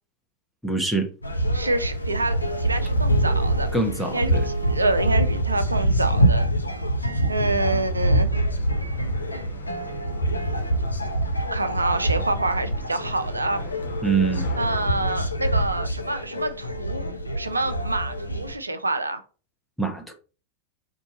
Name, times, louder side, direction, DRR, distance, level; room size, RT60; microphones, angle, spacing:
voice 1, 0.6-1.1 3.7-4.4 14.0-14.4 19.8-20.1, right 4 dB, ahead, 0.8 m, -24 dB
sound 1, 1.2-18.5, right 1 dB, 85° left, 0.6 m, -25 dB
voice 2, 1.5-3.7 4.1-6.5 7.3-8.3 11.5-13.7 14.6-17.1 17.4-19.2, right 2 dB, 80° right, 0.5 m, -27 dB
sound 2, 3.7-15.2, left 3 dB, 55° left, 1.4 m, -45 dB
4.5 x 2.7 x 4.0 m
figure-of-eight pair, 90°, 0 cm